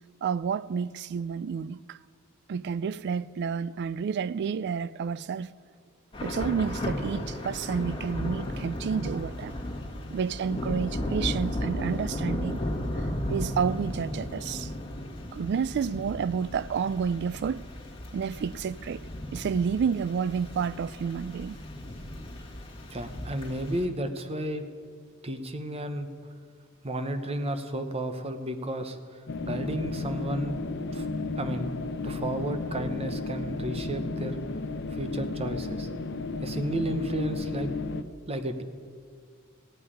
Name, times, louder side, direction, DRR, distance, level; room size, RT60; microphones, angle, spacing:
voice 1, 0.2-2.0 2.5-5.5 6.2-9.5 10.1-12.6 13.3-14.7 15.3-17.6 18.1-19.0 19.3-21.6, right 6 dB, 55° right, 0.3 m, -30 dB
Thunder / Rain, 6.1-23.8, left 1 dB, 25° left, 1.6 m, -35 dB
voice 2, 22.9-24.7 25.2-26.1 26.8-30.6 30.9-31.1 31.4-31.7 32.0-34.4 34.9-35.9 36.4-37.7 38.3-38.6, right 1 dB, 30° right, 0.9 m, -32 dB
sound 1, 29.3-38.0, left 3 dB, 55° left, 0.6 m, -33 dB
16.0 x 5.6 x 9.8 m
head